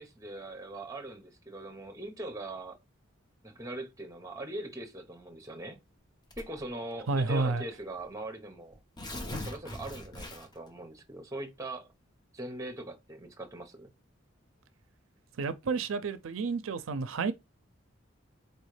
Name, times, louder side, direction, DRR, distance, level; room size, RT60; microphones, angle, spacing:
voice 1, 0.0-2.8 3.4-5.8 6.4-8.8 9.3-11.9 12.3-13.9, right 1 dB, 15° right, 0.9 m, -41 dB
Tearing, 6.3-6.7 7.6-7.7 8.0-8.1 8.7-10.7, left 1 dB, 20° left, 0.9 m, -40 dB
voice 2, 7.1-7.6 15.4-17.3, right 4 dB, 80° right, 0.5 m, -30 dB
4.4 x 3.1 x 3.2 m
head